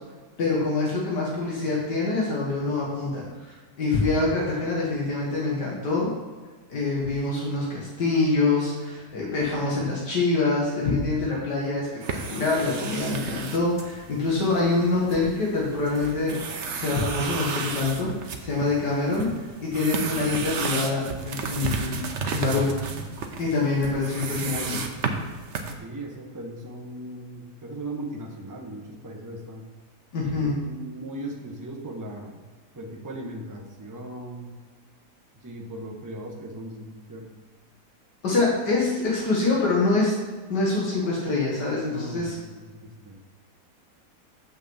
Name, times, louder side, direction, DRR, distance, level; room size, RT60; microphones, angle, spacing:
voice 1, 0.4-6.1 6.7-11.9 12.3-16.4 16.7-18.1 18.4-19.3 19.7-22.0 22.3-22.7 23.4-24.8 30.1-30.6 38.2-40.2 40.5-42.3, left 3 dB, 80° left, -4 dB, 2.3 m, -25 dB
sound 1, 12.0-25.7, right 4 dB, 50° right, 1.0 m, -33 dB
voice 2, 25.8-29.6 30.2-32.4 32.7-34.6 35.3-37.3 41.9-43.2, right 1 dB, 15° right, 0 dB, 1.0 m, -38 dB
6.3 x 6.2 x 7.3 m, 1.4 s
omnidirectional pair, 1.8 m